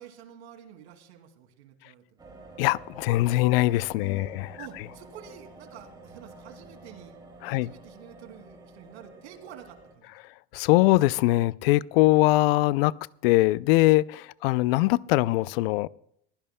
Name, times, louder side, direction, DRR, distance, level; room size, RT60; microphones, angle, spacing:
voice 1, 0.0-2.2 4.0-7.2 7.5-10.1, right 9 dB, 90° right, 2.6 m, -48 dB
sound 1, 2.2-9.9, right 2 dB, 15° right, 2.4 m, -49 dB
voice 2, 2.6-4.5 7.4-7.7 10.5-12.9 13.2-15.9, left 18 dB, 65° left, 0.5 m, -22 dB
22.5 x 16.0 x 2.2 m
supercardioid pair, 145°, 32 cm